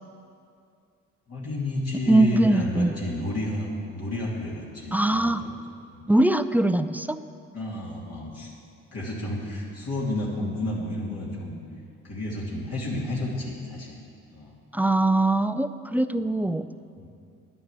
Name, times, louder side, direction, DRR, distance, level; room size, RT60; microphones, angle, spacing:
voice 1, 1.3-5.5 5.9-6.1 7.5-8.5 8.9-11.5 12.0-14.0 14.3-14.5 16.9-17.1, left 1 dB, 55° left, -5 dB, 2.9 m, -31 dB
voice 2, 1.9-2.9 4.9-5.4 6.1-7.2 14.7-16.6, right 2 dB, 5° right, 10 dB, 0.4 m, -22 dB
10.5 x 9.8 x 8.2 m, 2.4 s
cardioid pair, 90°, 30 cm